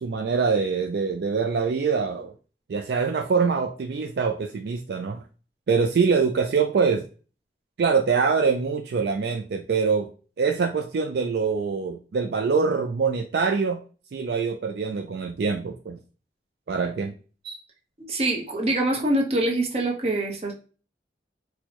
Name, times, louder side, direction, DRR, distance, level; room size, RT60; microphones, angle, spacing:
voice 1, 0.0-2.3 2.7-5.2 5.7-7.0 7.8-10.1 10.4-13.8 14.1-16.0 16.7-17.1 17.4-17.6, right 5 dB, 65° right, 4 dB, 0.3 m, -24 dB
voice 2, 18.0-20.5, right 1 dB, 35° right, 0 dB, 0.8 m, -24 dB
4.4 x 2.1 x 2.9 m, 0.36 s
head